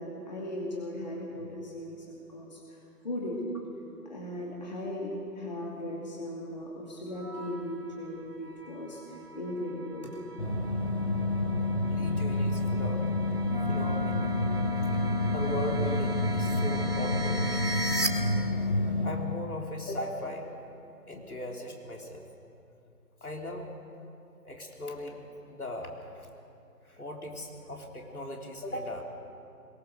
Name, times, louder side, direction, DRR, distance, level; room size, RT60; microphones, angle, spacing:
voice 1, 0.0-3.6 4.1-10.1, left 1 dB, 25° left, -3 dB, 2.4 m, -37 dB
sound 1, 7.1-18.1, right 1 dB, 70° right, 2.4 m, -40 dB
sound 2, 10.4-19.1, left 2 dB, 40° left, 2.4 m, -29 dB
voice 2, 11.9-13.0 13.6-14.4 15.0-17.5 19.0-22.3 23.2-23.7 24.4-26.3 26.8-29.0, left 1 dB, 60° left, 0 dB, 3.7 m, -38 dB
Wind instrument woodwind instrument, 13.5-18.4, left 1 dB, 30° right, 1.2 m, -37 dB
22.5 x 22.5 x 6.5 m, 2.7 s
figure-of-eight pair, 165°, 49 cm